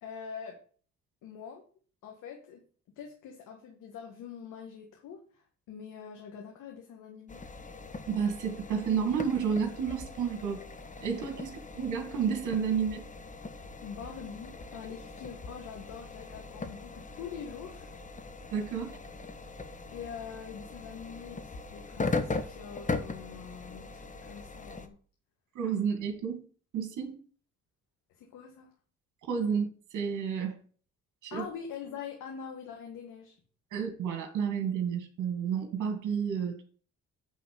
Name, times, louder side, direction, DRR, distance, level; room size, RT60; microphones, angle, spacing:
voice 1, 0.0-0.6 1.2-1.6 2.0-2.6 3.0-7.4 13.8-17.9 19.9-25.0 28.1-28.7 31.3-33.4, left 7 dB, 85° left, 1 dB, 1.8 m, -44 dB
sound 1, 7.3-24.9, left 3 dB, 25° left, 1.3 m, -40 dB
voice 2, 8.1-10.6 11.0-13.0 18.5-19.0 25.5-26.4 26.7-27.2 29.2-30.6 31.2-31.4 33.7-36.6, right 7 dB, 75° right, 5 dB, 2.4 m, -31 dB
9.2 x 4.0 x 6.8 m, 0.41 s
cardioid pair, 90°, 30 cm